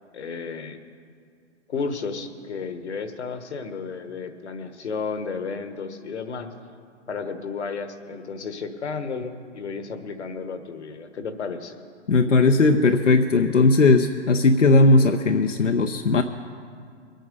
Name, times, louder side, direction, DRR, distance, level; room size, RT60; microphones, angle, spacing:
voice 1, 0.1-0.8 1.7-6.5 7.1-11.8, left 5 dB, 65° left, 9 dB, 1.4 m, -32 dB
voice 2, 12.1-16.2, left 3 dB, 85° left, 5 dB, 0.8 m, -18 dB
22.0 x 9.1 x 5.3 m, 2.2 s
figure-of-eight pair, 125°, 36 cm